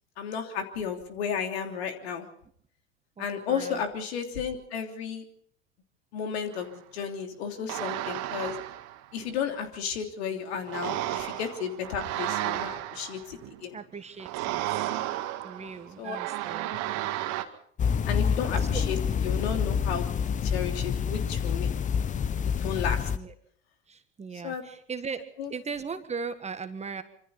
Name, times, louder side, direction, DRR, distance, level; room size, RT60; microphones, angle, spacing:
voice 1, 0.2-2.3 3.2-5.2 6.1-8.6 9.1-13.8 16.0-16.2 18.1-20.1 20.4-21.7 22.6-23.1 24.4-24.6 25.4-25.5, left 7 dB, 60° left, 5 dB, 3.2 m, -33 dB
voice 2, 3.2-3.8 13.7-14.9 15.4-16.7 18.6-18.8 23.1-23.3 23.9-25.2 25.5-27.0, right 5 dB, 20° right, 10 dB, 1.6 m, -38 dB
sound 1, 6.5-6.7 7.7-9.4 10.7-13.7 14.2-17.4, right 15 dB, 45° right, 2.0 m, -33 dB
sound 2, 17.8-23.2, left 7 dB, 20° left, 0.8 m, -27 dB
25.5 x 25.5 x 4.1 m, 0.63 s
figure-of-eight pair, 75°, 35 cm